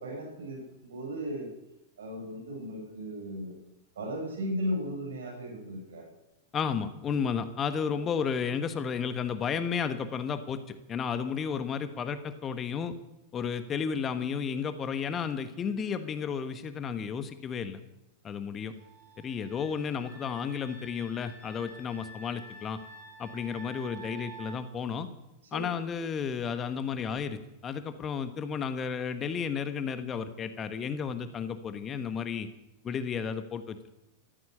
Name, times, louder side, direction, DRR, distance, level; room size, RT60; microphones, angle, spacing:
voice 1, 0.0-1.5 2.0-3.6 4.0-6.1 25.5-25.7, equal, 65° right, 1 dB, 7.4 m, -36 dB
voice 2, 6.5-12.9 13.3-17.8 18.2-18.7 19.2-22.8 23.2-25.1 25.5-32.5 32.8-33.9, left 6 dB, 25° left, 10 dB, 1.3 m, -33 dB
sound 1, 18.6-24.6, right 2 dB, 45° right, 5.7 m, -49 dB
14.5 x 14.0 x 6.8 m, 0.90 s
figure-of-eight pair, 90°, 0 cm